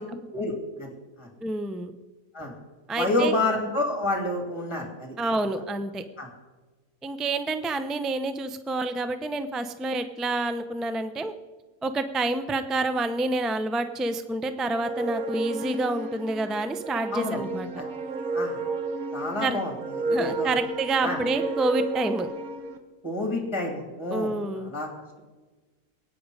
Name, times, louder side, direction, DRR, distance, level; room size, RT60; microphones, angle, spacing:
voice 1, 0.3-0.9 1.2-1.3 2.3-2.5 3.0-5.1 6.2-6.3 17.1-17.4 17.8-17.9 18.3-18.6 19.1-19.7 20.0-20.5 21.0-21.2 23.0-24.3 24.6-24.9, left 2 dB, 20° left, 1 dB, 2.8 m, -28 dB
voice 2, 1.4-1.9 2.9-3.4 5.2-6.0 7.0-11.3 11.8-17.7 19.4-19.6 20.1-22.3 24.1-24.7, right 2 dB, ahead, 9 dB, 0.4 m, -28 dB
sound 1, 14.6-22.8, right 3 dB, 70° right, 1.6 m, -32 dB
23.0 x 9.5 x 4.9 m, 1.3 s
omnidirectional pair, 1.6 m